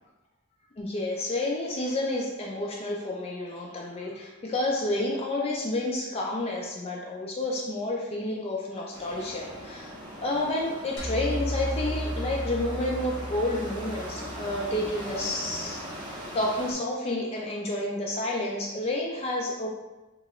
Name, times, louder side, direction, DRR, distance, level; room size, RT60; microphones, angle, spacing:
voice 1, 0.8-9.9 10.2-15.8 16.3-19.7, left 1 dB, 30° left, -2 dB, 0.3 m, -30 dB
sound 1, 8.9-16.7, equal, 20° right, 0.6 m, -40 dB
sound 2, 11.0-15.3, equal, 55° left, 0.7 m, -35 dB
2.9 x 2.4 x 2.9 m, 1.1 s
head